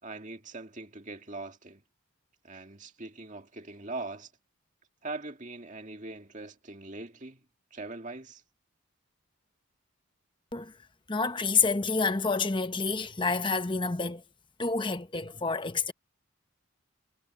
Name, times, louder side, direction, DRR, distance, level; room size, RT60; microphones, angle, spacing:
voice 1, 0.0-1.8 2.4-4.3 5.0-7.4 7.7-8.4, right 2 dB, 35° right, 2.1 m, -41 dB
voice 2, 11.1-14.2 14.6-15.9, left 4 dB, 20° left, 0.9 m, -28 dB
head